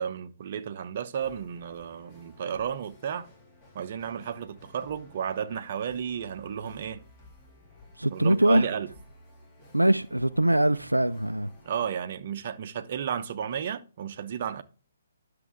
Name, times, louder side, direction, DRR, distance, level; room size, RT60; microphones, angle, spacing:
voice 1, 0.0-3.3 3.7-7.1 8.1-8.9 11.6-14.6, right 8 dB, 45° right, 0.9 m, -33 dB
sound 1, 1.2-11.9, left 1 dB, 25° left, 3.4 m, -55 dB
voice 2, 8.0-8.7 9.7-11.5, right 1 dB, 90° right, 0.5 m, -22 dB
11.0 x 6.7 x 3.6 m
figure-of-eight pair, 135°, 0 cm